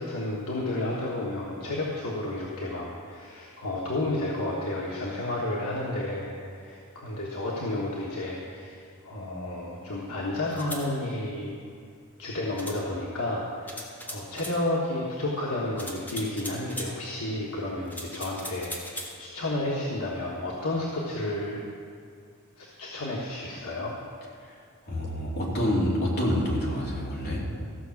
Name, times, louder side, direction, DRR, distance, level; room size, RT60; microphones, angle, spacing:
voice 1, 0.0-11.6 12.2-21.6 22.6-23.9, left 1 dB, 85° left, -4 dB, 1.4 m, -31 dB
sound 1, 10.5-10.9 12.6-12.8 13.7-14.6 15.8-16.9 17.9-19.1, equal, 10° left, 1.4 m, -38 dB
voice 2, 24.9-27.4, equal, 50° left, -4 dB, 2.6 m, -27 dB
14.5 x 5.9 x 7.1 m, 2.3 s
head